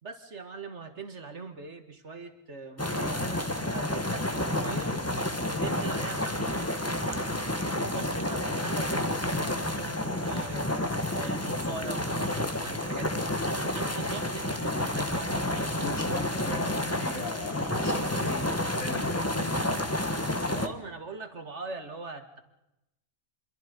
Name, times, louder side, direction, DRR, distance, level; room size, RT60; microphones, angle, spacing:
voice 1, 0.0-5.0 5.5-7.5 7.9-10.7 11.1-12.1 12.3-15.7 20.5-22.4, right 4 dB, 55° right, 7 dB, 2.2 m, -42 dB
sound 1, 2.8-20.7, left 1 dB, 10° left, 1.5 m, -30 dB
voice 2, 15.5-19.8, left 3 dB, 70° left, 2 dB, 3.8 m, -39 dB
27.0 x 23.0 x 5.3 m, 0.90 s
omnidirectional pair, 1.5 m